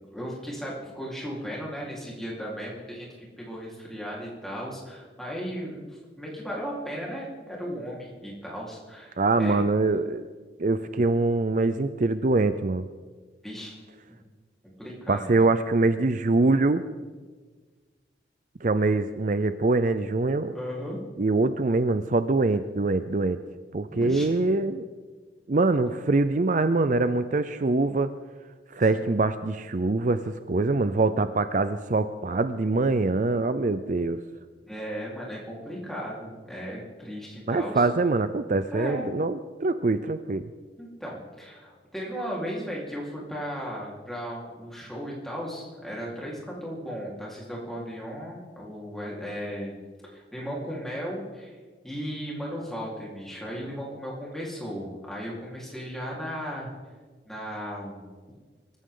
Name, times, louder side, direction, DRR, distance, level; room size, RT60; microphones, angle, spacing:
voice 1, 0.1-9.6 13.4-13.8 14.1-14.2 14.8-15.5 20.5-21.0 23.9-24.5 28.9-29.2 34.6-37.8 38.7-39.1 40.8-49.8 50.1-51.6 51.8-56.7 57.3-58.1, equal, ahead, -5 dB, 4.1 m, -36 dB
voice 2, 9.2-10.2 10.6-12.9 15.1-16.8 18.6-20.5 21.2-23.4 23.7-24.9 25.5-28.1 28.7-34.2 37.5-40.5, right 3 dB, 45° right, 11 dB, 0.5 m, -24 dB
24.5 x 14.5 x 3.9 m, 1.5 s
head